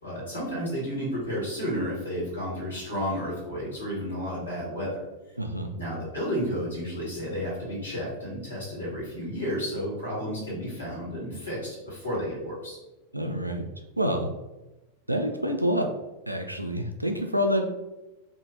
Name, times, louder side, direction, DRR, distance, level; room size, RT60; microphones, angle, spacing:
voice 1, 0.0-5.0 5.7-12.8, equal, 75° left, -6 dB, 1.4 m, -32 dB
voice 2, 5.4-5.7 13.1-13.6 14.0-14.3 15.1-15.9 16.3-17.6, equal, 85° right, 5 dB, 0.3 m, -27 dB
2.8 x 2.4 x 2.7 m, 1.0 s
figure-of-eight pair, 90°, 0 cm